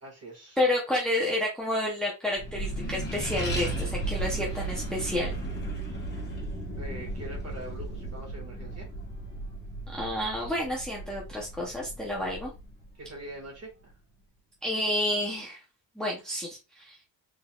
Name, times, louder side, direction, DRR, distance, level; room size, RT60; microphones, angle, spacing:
voice 1, 0.0-0.6 6.8-8.9 13.0-13.9, right 1 dB, 35° right, 1.9 m, -43 dB
voice 2, 0.6-5.3 9.9-12.5 14.6-15.6 16.0-17.0, left 1 dB, ahead, 0.8 m, -30 dB
Accelerating revving vroom, 2.3-13.3, right 2 dB, 20° left, 1.6 m, -35 dB
3.9 x 3.9 x 2.4 m
cardioid pair, 160°, 46 cm